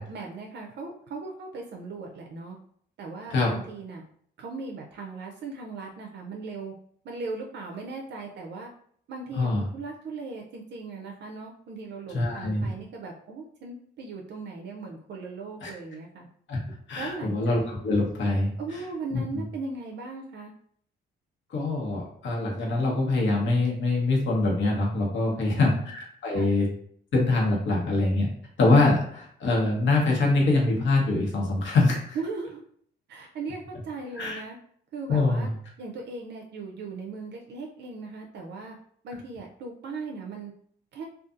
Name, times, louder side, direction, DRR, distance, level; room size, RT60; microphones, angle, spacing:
voice 1, 0.0-2.6 3.0-4.0 4.4-6.7 7.0-8.7 9.1-16.3 17.0-17.6 18.6-20.5 25.3-25.9 26.3-26.6 32.1-32.6 33.1-34.6 34.9-35.5 35.8-38.8 39.0-40.5 40.9-41.0, right 3 dB, 60° right, 1 dB, 0.4 m, -38 dB
voice 2, 12.1-12.7 15.6-15.7 16.5-16.6 16.9-18.5 19.1-19.2 21.5-26.7 27.1-28.3 28.6-32.2 34.2-34.4 35.1-35.5, left 2 dB, 70° left, -2 dB, 1.0 m, -24 dB
2.6 x 2.3 x 2.4 m, 0.62 s
cardioid pair, 90°, 20 cm